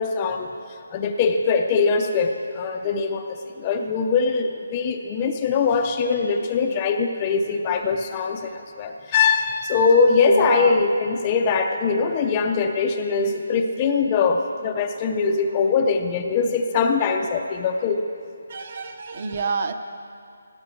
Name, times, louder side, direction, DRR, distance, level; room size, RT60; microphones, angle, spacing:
voice 1, 0.0-18.0, left 5 dB, 15° left, 4 dB, 0.5 m, -22 dB
voice 2, 10.1-10.9 18.5-19.7, right 4 dB, 30° right, 8 dB, 0.7 m, -28 dB
17.0 x 17.0 x 4.5 m, 2.4 s
hypercardioid pair, 175°, 0 cm